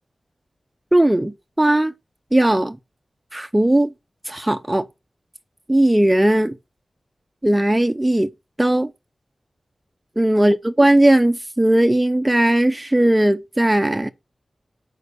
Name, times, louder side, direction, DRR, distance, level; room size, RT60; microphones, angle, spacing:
voice 1, 0.9-1.9 2.3-2.8 3.3-3.9 4.3-4.8 5.7-6.6 7.4-8.3 8.6-8.9 10.2-14.1, right 1 dB, 15° right, 0.6 m, -17 dB
6.8 x 4.5 x 6.7 m
cardioid pair, 50°, 0 cm